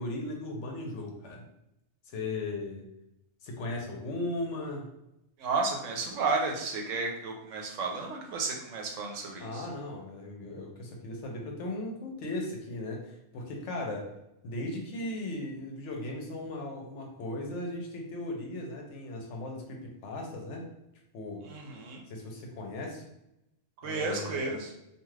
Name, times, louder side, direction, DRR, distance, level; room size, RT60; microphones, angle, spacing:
voice 1, 0.0-1.4 2.1-2.8 3.4-4.9 9.4-14.1 14.4-20.7 21.1-21.4 22.1-23.0 23.8-24.5, left 2 dB, 70° left, 1 dB, 0.9 m, -37 dB
voice 2, 5.4-9.7 21.4-22.0 23.8-24.7, right 3 dB, 75° right, 1 dB, 1.0 m, -32 dB
2.5 x 2.3 x 3.1 m, 0.85 s
omnidirectional pair, 1.3 m